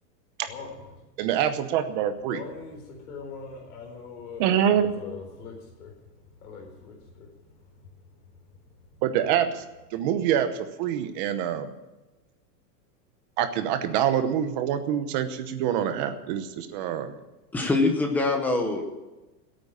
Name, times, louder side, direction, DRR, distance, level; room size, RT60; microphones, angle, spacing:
voice 1, 1.2-2.4 4.4-4.9 9.0-9.6 9.9-11.7 13.4-17.2, right 9 dB, 30° right, 9 dB, 0.9 m, -25 dB
voice 2, 2.3-5.9 6.4-7.3, left 5 dB, 60° left, 2 dB, 4.2 m, -41 dB
voice 3, 17.5-18.9, left 3 dB, 5° left, 3 dB, 0.7 m, -24 dB
16.5 x 8.8 x 8.7 m, 1.1 s
supercardioid pair, 180°, 49 cm